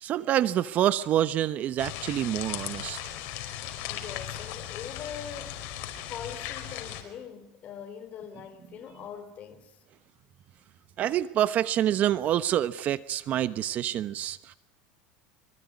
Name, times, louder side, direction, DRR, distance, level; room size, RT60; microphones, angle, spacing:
voice 1, 0.0-3.0 11.0-14.5, right 11 dB, 40° right, 1.1 m, -27 dB
sound 1, 1.8-7.0, left 12 dB, 55° left, 5.0 m, -37 dB
voice 2, 3.9-5.6 6.1-9.8, left 8 dB, 35° left, 3.9 m, -42 dB
24.5 x 24.5 x 9.7 m
supercardioid pair, 135°, 4 cm